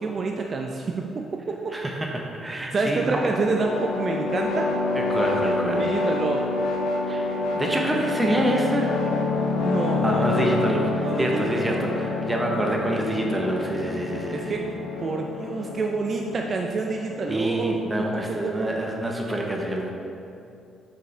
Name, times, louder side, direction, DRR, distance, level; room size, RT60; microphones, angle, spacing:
voice 1, 0.0-1.7 2.6-4.7 5.8-6.4 9.6-10.3 11.0-11.9 14.3-14.6 15.0-18.7, right 3 dB, 45° right, 1 dB, 0.5 m, -28 dB
voice 2, 1.7-3.3 4.9-5.9 7.1-9.0 9.9-14.6 17.3-19.9, right 1 dB, 15° right, 0 dB, 0.8 m, -27 dB
sound 1, 3.0-18.4, left 3 dB, 75° left, 0.6 m, -28 dB
7.5 x 5.4 x 3.3 m, 2.7 s
cardioid pair, 90°, 0 cm